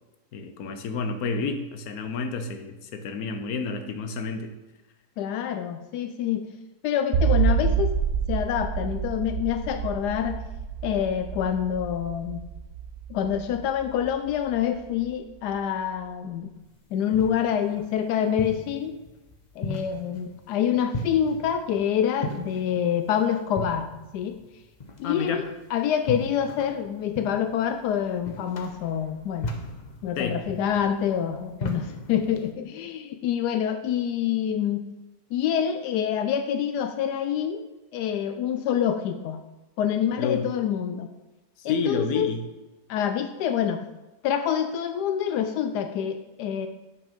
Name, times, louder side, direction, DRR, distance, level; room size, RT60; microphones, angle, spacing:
voice 1, 0.3-4.5 25.0-25.5 30.2-30.4 40.2-40.5 41.6-42.4, left 4 dB, 65° left, 7 dB, 1.3 m, -30 dB
voice 2, 5.2-6.5 6.8-7.9 8.3-10.4 10.8-12.4 13.1-16.5 16.9-18.9 19.6-23.9 24.1-24.4 25.0-29.5 30.0-34.8 35.3-37.6 37.9-39.4 39.8-41.1 41.6-42.3 42.9-43.8 44.2-46.7, left 9 dB, 85° left, 8 dB, 1.2 m, -26 dB
sound 1, 7.1-14.3, right 7 dB, 80° right, 1.2 m, -27 dB
sound 2, 16.6-32.5, left 1 dB, 35° left, 0.8 m, -38 dB
7.4 x 6.1 x 5.2 m, 1.1 s
omnidirectional pair, 1.7 m